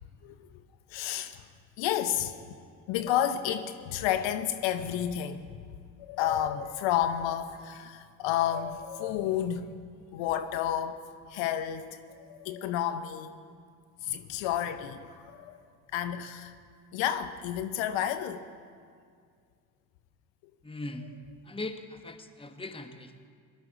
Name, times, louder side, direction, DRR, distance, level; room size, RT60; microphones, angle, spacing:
voice 1, 0.9-1.5 1.8-2.3 2.9-5.6 6.0-9.8 10.1-11.0 11.3-13.3 14.0-15.6 15.9-16.5 16.9-18.4, left 10 dB, 65° left, 0.8 m, -31 dB
voice 2, 20.6-21.2 21.4-23.3, left 2 dB, 10° left, 1.1 m, -40 dB
20.0 x 12.5 x 3.7 m
hypercardioid pair, 55°, 47 cm